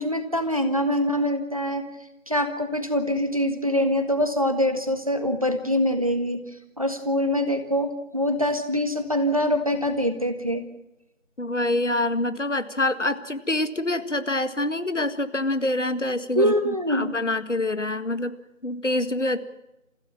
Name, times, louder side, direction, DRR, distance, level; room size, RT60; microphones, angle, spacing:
voice 1, 0.0-1.8 2.3-6.4 6.8-10.7 16.4-17.1, equal, 25° right, 8 dB, 1.6 m, -24 dB
voice 2, 11.4-18.3 18.6-19.4, left 1 dB, 65° left, 12 dB, 2.0 m, -26 dB
29.0 x 15.5 x 7.3 m, 0.90 s
figure-of-eight pair, 175°, 39 cm